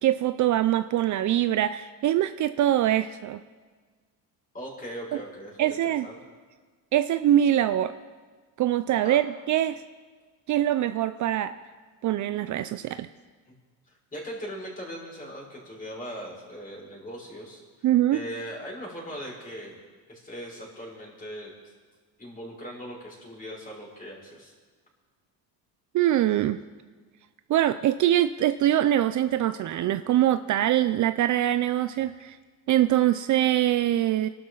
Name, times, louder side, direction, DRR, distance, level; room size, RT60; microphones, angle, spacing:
voice 1, 0.0-3.4 5.1-5.2 5.6-6.1 6.9-7.9 8.6-9.8 10.5-11.5 12.0-13.1 17.8-18.2 25.9-26.6 27.5-32.4 32.7-34.3, right 12 dB, 50° right, 11 dB, 0.6 m, -23 dB
voice 2, 4.5-6.2 9.0-9.2 14.1-19.8 20.1-21.5 22.2-24.5, equal, 20° left, -3 dB, 5.7 m, -39 dB
26.5 x 12.5 x 4.0 m, 1.4 s
cardioid pair, 125°, 40 cm